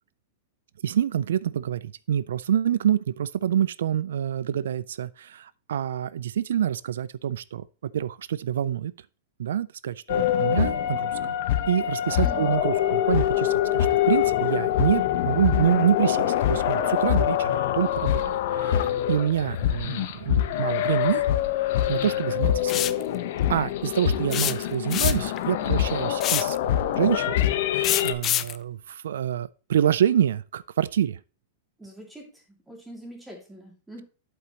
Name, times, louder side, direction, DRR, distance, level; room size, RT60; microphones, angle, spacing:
voice 1, 0.8-7.6 7.9-8.9 9.4-11.2 11.7-21.2 21.9-22.9 23.5-27.4 27.7-31.2, right 10 dB, 90° right, 0.3 m, -26 dB
sound 1, 10.1-28.1, left 11 dB, 55° left, 0.8 m, -25 dB
voice 2, 12.2-12.6 31.8-34.0, right 1 dB, 5° right, 2.3 m, -43 dB
sound 2, 22.7-23.0 24.3-25.4 26.2-26.6 27.8-28.6, left 12 dB, 25° left, 0.3 m, -26 dB
8.2 x 7.7 x 2.9 m
supercardioid pair, 170°, 0 cm